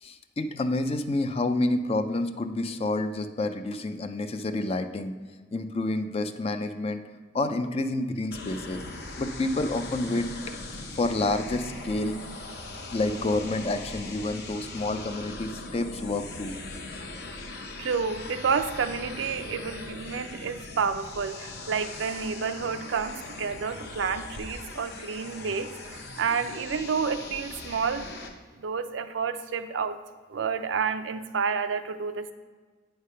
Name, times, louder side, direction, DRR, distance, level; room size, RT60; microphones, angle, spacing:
voice 1, 0.0-5.1 5.5-7.0 7.3-8.8 9.2-10.3 10.9-12.2 12.9-16.5, left 2 dB, 30° left, 9 dB, 0.4 m, -29 dB
sound 1, 8.3-28.3, left 2 dB, 60° left, 0.8 m, -40 dB
voice 2, 17.8-28.1 28.6-30.0 30.3-32.3, right 5 dB, 75° right, 10 dB, 0.4 m, -30 dB
9.0 x 3.4 x 5.6 m, 1.4 s
head